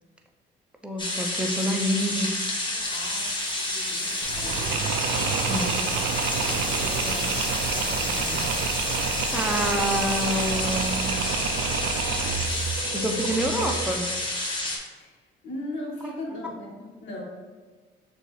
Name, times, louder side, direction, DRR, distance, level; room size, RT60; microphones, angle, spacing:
voice 1, 0.8-2.6 5.5-5.7 8.3-8.5 9.3-11.1 12.9-14.1, equal, 5° right, 2 dB, 0.6 m, -28 dB
sound 1, 1.0-14.8, left 1 dB, 25° left, 1.0 m, -29 dB
voice 2, 2.6-8.5 15.0-17.2, left 1 dB, 70° left, -3 dB, 1.4 m, -39 dB
sound 2, 2.8-12.8, right 5 dB, 60° right, 0.7 m, -41 dB
Mechanisms, 4.2-14.0, right 6 dB, 85° right, 0.4 m, -29 dB
6.6 x 2.5 x 3.2 m, 1.4 s
cardioid pair, 90°, 20 cm